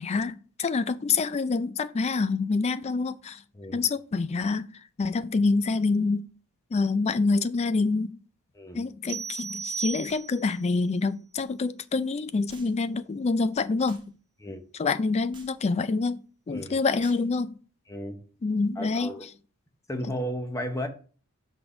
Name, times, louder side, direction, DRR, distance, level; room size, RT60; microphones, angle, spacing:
voice 1, 0.0-3.4 3.7-4.7 5.0-6.3 6.7-8.2 8.7-14.0 14.8-16.2 16.5-17.6 18.4-19.1, left 4 dB, 30° left, 0.3 m, -26 dB
sound 1, 9.1-10.6, right 6 dB, 70° right, 0.7 m, -35 dB
sound 2, 10.1-10.3 11.4-11.5 12.5-12.8 13.9-14.1 15.3-15.6 17.0-17.3, right 4 dB, 20° right, 1.0 m, -52 dB
voice 2, 17.9-18.2 18.8-19.3 19.9-20.9, equal, 15° left, 0.8 m, -34 dB
6.0 x 3.7 x 5.8 m
head